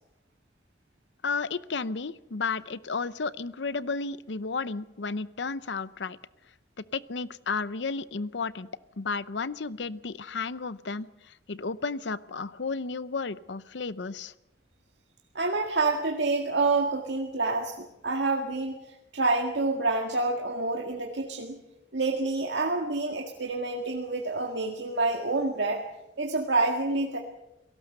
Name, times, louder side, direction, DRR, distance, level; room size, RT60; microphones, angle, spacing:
voice 1, 1.2-6.2 6.9-8.7 9.0-11.1 11.5-14.3, left 4 dB, 90° left, 16 dB, 0.7 m, -32 dB
voice 2, 15.4-21.6 21.9-25.8 26.2-27.2, right 3 dB, 85° right, 2 dB, 1.9 m, -28 dB
28.5 x 18.0 x 6.6 m, 0.95 s
head